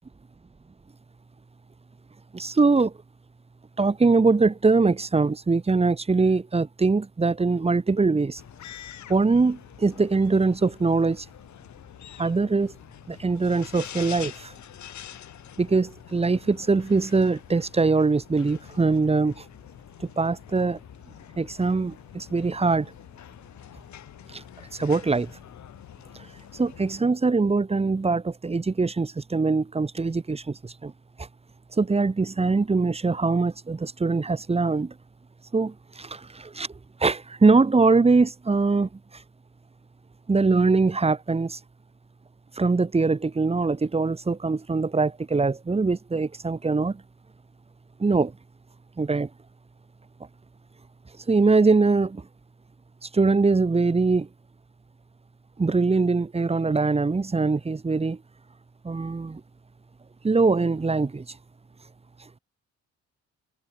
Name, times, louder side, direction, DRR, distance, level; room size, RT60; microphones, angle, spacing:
voice 1, 2.3-2.9 3.8-8.4 9.1-11.2 12.2-12.7 13.1-14.5 15.6-19.4 20.0-20.8 21.4-22.9 24.3-24.4 24.7-25.3 26.5-30.9 31.2-31.3 31.8-34.9 35.5-36.7 37.0-38.9 40.3-41.6 42.6-47.0 48.0-48.3 49.0-49.3 51.3-52.2 53.0-54.3 55.6-58.2 58.8-59.4 60.2-61.2, right 4 dB, 20° right, 1.3 m, -22 dB
sound 1, 8.4-27.0, left 11 dB, 70° left, 4.3 m, -46 dB
cardioid pair, 90°, 30 cm